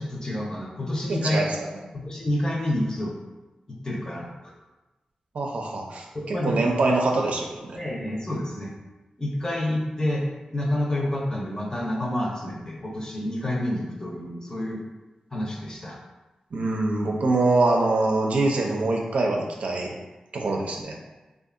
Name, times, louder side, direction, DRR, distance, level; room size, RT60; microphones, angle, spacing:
voice 1, 0.0-1.4 1.9-3.1 3.7-4.5 6.1-6.6 7.8-8.7 9.2-10.3 10.5-14.8 15.3-16.0, left 1 dB, 30° left, -2 dB, 0.7 m, -28 dB
voice 2, 1.1-1.8 5.3-7.8 16.5-19.9 20.3-20.9, right 2 dB, 70° right, 0 dB, 0.4 m, -24 dB
2.7 x 2.4 x 2.5 m, 1.1 s
cardioid pair, 40°, 2 cm